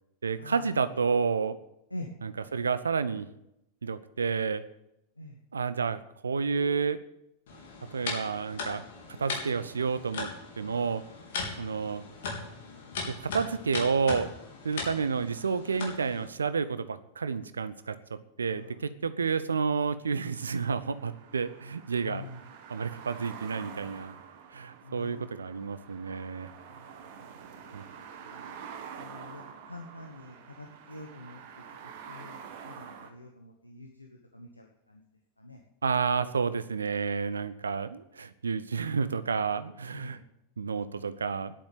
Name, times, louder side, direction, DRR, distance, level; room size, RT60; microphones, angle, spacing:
voice 1, 0.2-1.6 2.2-3.3 3.8-4.6 5.5-7.0 7.9-8.8 9.2-10.3 10.6-11.0 11.6-12.0 13.2-14.3 14.6-22.2 22.7-24.1 24.5-26.5 27.7-27.8 35.8-40.2 40.6-41.5, right 5 dB, 75° right, 14 dB, 0.8 m, -30 dB
sound 1, 7.5-16.3, left 4 dB, 55° left, 3.6 m, -39 dB
sound 2, 20.4-33.1, right 7 dB, 50° right, 1.6 m, -47 dB
voice 2, 22.0-22.4 24.8-25.3 27.2-27.3 27.5-27.8 28.3-28.5 29.0-31.4 32.1-32.4 32.6-34.1 34.3-35.0 35.4-35.6 39.9-40.2, left 2 dB, 85° left, 2 dB, 1.2 m, -45 dB
10.5 x 8.9 x 9.2 m, 0.83 s
figure-of-eight pair, 90°, 0 cm